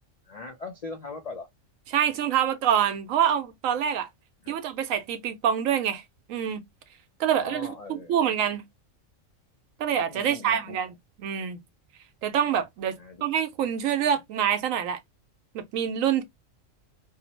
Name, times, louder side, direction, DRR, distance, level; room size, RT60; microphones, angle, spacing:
voice 1, 0.3-1.5 4.4-4.6 7.3-8.2 10.1-10.8 13.0-13.2, left 3 dB, 70° left, 0.3 m, -40 dB
voice 2, 1.9-4.1 4.5-6.0 6.3-6.6 7.2-8.6 9.8-11.6 12.2-15.0 15.5-16.2, right 9 dB, 85° right, 1.0 m, -26 dB
2.7 x 2.0 x 2.8 m
omnidirectional pair, 1.4 m